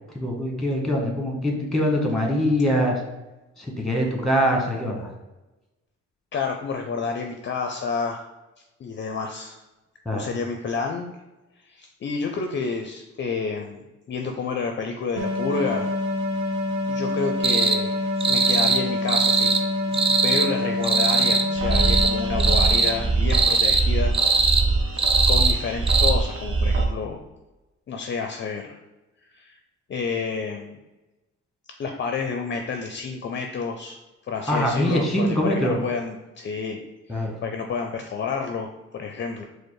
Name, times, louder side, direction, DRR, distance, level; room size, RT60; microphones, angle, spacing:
voice 1, 0.1-3.0 3.6-5.1 10.0-10.3 34.5-35.8 37.1-37.3, equal, ahead, 0 dB, 1.1 m, -23 dB
voice 2, 6.3-8.3 8.8-9.6 10.1-11.2 11.6-16.0 16.9-19.6 20.2-24.2 25.3-27.2 27.9-28.8 29.3-29.6 29.9-30.8 31.8-34.0 34.3-36.8 37.1-39.4, left 5 dB, 40° left, 4 dB, 0.4 m, -29 dB
sound 1, 15.2-23.3, left 2 dB, 80° right, 0.9 m, -27 dB
sound 2, 17.4-17.8 18.2-18.8 19.1-19.6 19.9-20.5 20.8-21.5 21.7-22.1 22.4-22.9 23.3-23.8 24.1-24.6 25.0-25.6 25.9-26.1, right 4 dB, 20° right, 0.4 m, -21 dB
sound 3, 21.6-26.9, right 3 dB, 45° right, 0.7 m, -23 dB
4.9 x 2.1 x 4.6 m, 1.1 s
cardioid pair, 90°, 30 cm